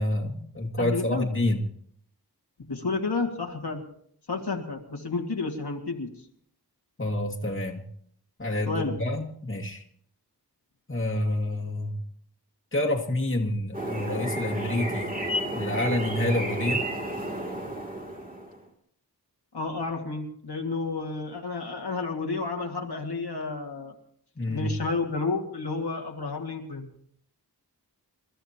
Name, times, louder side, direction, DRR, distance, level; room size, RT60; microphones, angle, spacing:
voice 1, 0.0-1.7 7.0-7.8 8.4-9.8 10.9-12.0 12.7-15.1 15.5-16.9 24.4-24.7, left 1 dB, 30° left, 0 dB, 2.3 m, -28 dB
voice 2, 0.8-1.3 2.7-3.8 4.3-6.1 8.7-8.9 19.5-23.9 24.5-26.9, left 3 dB, 75° left, 2 dB, 2.2 m, -31 dB
sound 1, 13.7-18.6, right 1 dB, 20° right, 3.0 m, -31 dB
28.0 x 13.5 x 2.9 m, 0.64 s
wide cardioid pair, 65°, 40 cm